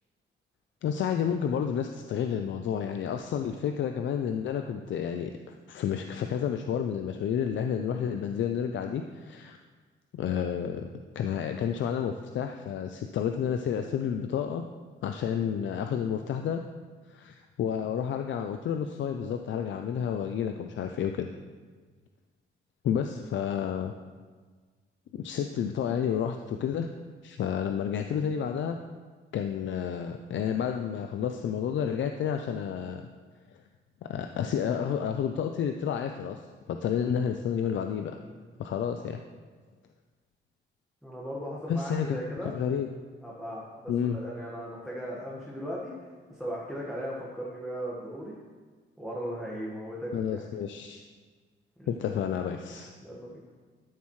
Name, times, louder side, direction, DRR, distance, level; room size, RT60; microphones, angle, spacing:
voice 1, 0.8-5.3 5.7-9.6 10.1-10.9 11.1-14.6 15.0-16.6 17.1-21.3 22.8-23.9 25.1-26.9 27.2-28.8 29.3-33.0 34.0-36.4 36.7-38.2 38.6-39.2 41.7-42.2 42.4-42.9 43.9-44.2 50.1-51.0 51.9-52.9, left 8 dB, 70° left, 6 dB, 0.5 m, -30 dB
voice 2, 41.0-42.5 43.2-48.3 49.0-50.4 51.8-52.1 53.0-53.4, equal, ahead, -6 dB, 1.5 m, -38 dB
13.0 x 7.1 x 3.2 m, 1.5 s
cardioid pair, 135°, 20 cm